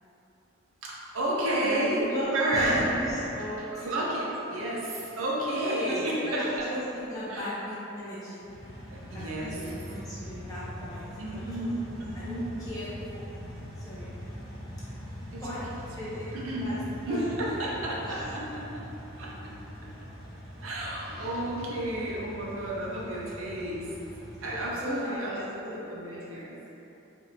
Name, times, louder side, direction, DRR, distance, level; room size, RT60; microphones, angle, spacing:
voice 1, 0.8-2.1 2.3-2.9 3.7-6.7 7.3-7.5 8.9-9.7 11.2-12.5 15.3-15.4 16.3-16.8 17.0-18.8 19.2-19.3 19.8-20.1 20.6-23.9 24.4-25.4 25.7-26.5, right 1 dB, 75° right, -5 dB, 0.7 m, -31 dB
voice 2, 1.6-3.9 5.5-8.5 9.1-11.0 11.5-11.7 12.1-12.9 13.8-14.1 15.4-15.7 15.9-16.2 16.6-17.6 18.0-18.3 24.5-26.5, equal, 15° left, -10 dB, 0.7 m, -37 dB
sound 1, 8.4-25.1, equal, 5° right, 1.4 m, -42 dB
5.0 x 2.6 x 2.7 m, 3.0 s
head